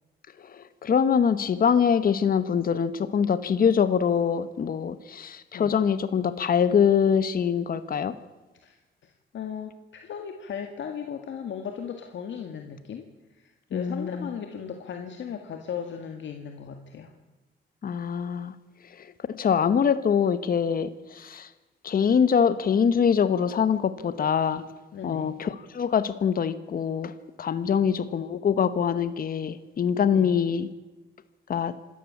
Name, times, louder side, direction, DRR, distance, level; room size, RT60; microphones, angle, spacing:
voice 1, 0.4-8.2 13.7-14.3 17.8-18.5 19.0-21.5 21.8-24.6 25.0-27.1 27.4-30.7 31.5-31.8, left 7 dB, 45° left, 13 dB, 1.1 m, -24 dB
voice 2, 8.6-17.1 24.9-25.4 27.7-27.9 30.1-30.4, left 7 dB, 70° left, 4 dB, 2.0 m, -37 dB
26.0 x 13.0 x 8.6 m, 1.2 s
cardioid pair, 120°, 20 cm